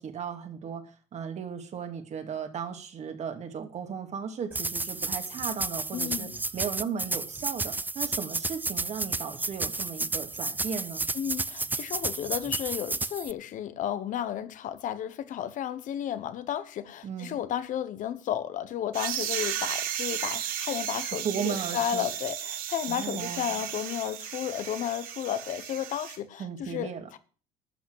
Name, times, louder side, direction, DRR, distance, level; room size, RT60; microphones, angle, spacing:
voice 1, 0.0-11.1 17.0-17.4 21.2-22.1 22.9-23.6 26.4-27.1, right 7 dB, 50° right, 2.4 m, -36 dB
sound 1, 4.5-13.3, right 3 dB, 10° right, 0.4 m, -32 dB
voice 2, 5.9-6.3 11.1-27.2, left 10 dB, 60° left, 1.2 m, -33 dB
sound 2, 18.9-26.2, right 11 dB, 75° right, 1.6 m, -34 dB
12.0 x 5.9 x 8.0 m
supercardioid pair, 75°, 15 cm